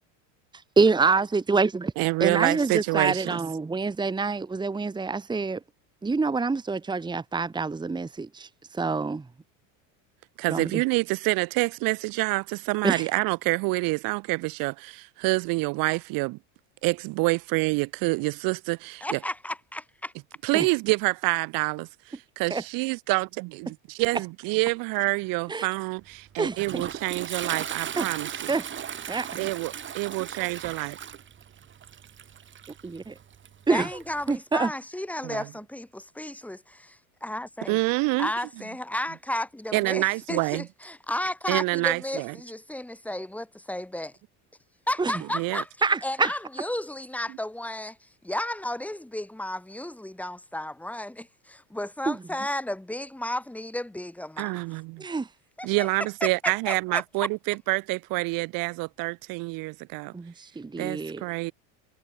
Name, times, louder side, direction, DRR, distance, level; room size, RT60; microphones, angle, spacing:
voice 1, 0.8-1.9 2.2-5.6 6.0-8.5 8.8-9.2 10.5-10.7 12.8-13.0 20.5-20.7 22.5-22.6 25.5-25.7 26.4-26.8 28.0-28.1 28.5-28.6 29.1-29.4 32.8-33.0 33.7-33.9 34.3-34.7 45.0-45.1 45.8-46.3 52.1-52.2 55.0-55.3 60.1-61.2, right 4 dB, 10° right, 1.9 m, -26 dB
voice 2, 2.0-3.4 10.4-16.4 16.8-19.2 20.4-28.5 29.3-31.0 35.2-35.4 37.7-38.3 39.7-40.6 41.5-42.3 45.3-45.6 54.4-55.0 55.6-60.1 60.8-61.5, right 26 dB, 60° right, 1.4 m, -27 dB
voice 3, 19.0-20.1 33.7-37.8 38.2-44.1 44.9-45.7 46.0-54.6 55.6-55.9 56.2-57.0, left 1 dB, 5° left, 3.2 m, -33 dB
Toilet flush, 26.0-34.4, right 8 dB, 30° right, 5.5 m, -37 dB
cardioid pair, 140°, 38 cm